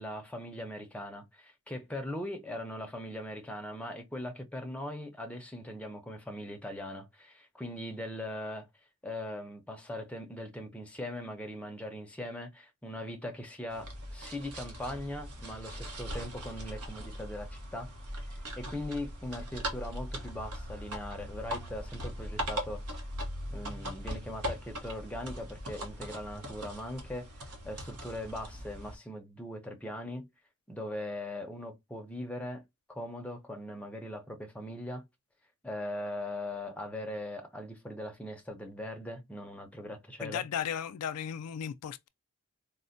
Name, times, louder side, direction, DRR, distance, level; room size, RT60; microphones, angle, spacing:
voice 1, 0.0-8.7 9.0-17.9 18.6-22.8 23.5-27.3 27.6-30.3 30.7-32.6 32.9-35.0 35.6-40.4, left 1 dB, 5° left, 0.6 m, -40 dB
sound 1, 13.7-29.0, equal, 85° right, 1.0 m, -40 dB
voice 2, 40.2-42.1, left 8 dB, 85° left, 0.3 m, -35 dB
4.2 x 2.1 x 2.5 m
head